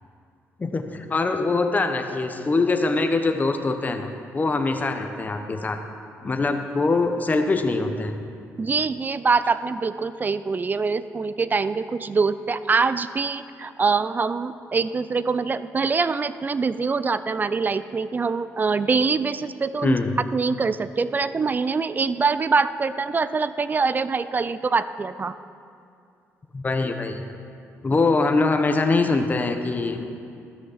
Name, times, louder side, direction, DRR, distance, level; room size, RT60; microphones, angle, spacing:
voice 1, 0.6-4.1 4.3-5.8 6.2-8.2 19.8-20.1 26.5-27.2 27.8-30.1, left 3 dB, 30° left, 5 dB, 0.9 m, -23 dB
voice 2, 8.6-20.0 20.3-25.3, right 4 dB, 30° right, 14 dB, 0.4 m, -24 dB
12.0 x 6.4 x 5.7 m, 2.4 s
supercardioid pair, 70°, 6 cm